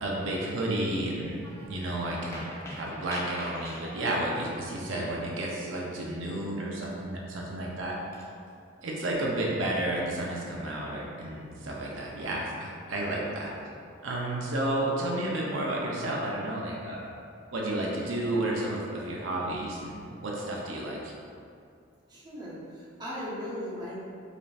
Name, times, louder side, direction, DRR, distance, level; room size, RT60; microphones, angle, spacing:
voice 1, 0.0-8.0 8.8-13.5 14.0-17.1 17.5-21.1, right 1 dB, 80° right, -3 dB, 0.6 m, -31 dB
Throw-wooden-toy-blocks, 1.3-1.8 2.1-4.1 6.8-7.0 7.6-7.7 8.1-8.7 10.2-10.9 12.0-12.6 13.1-13.3, equal, 15° left, 0.5 m, -44 dB
voice 2, 22.1-24.1, equal, 20° right, -8 dB, 0.7 m, -38 dB
4.9 x 2.6 x 2.4 m, 2.4 s
head